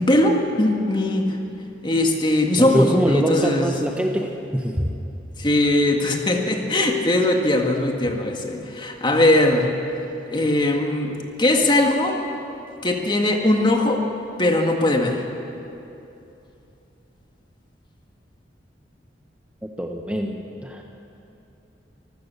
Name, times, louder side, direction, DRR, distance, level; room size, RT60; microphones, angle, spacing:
voice 1, 0.0-1.4 1.8-3.8 5.4-9.7 10.3-12.2 12.8-14.0 14.4-15.2, left 1 dB, 25° left, 2 dB, 1.8 m, -20 dB
voice 2, 2.6-4.9 19.6-20.8, equal, 5° right, 2 dB, 1.0 m, -23 dB
24.5 x 15.0 x 7.0 m, 2.8 s
head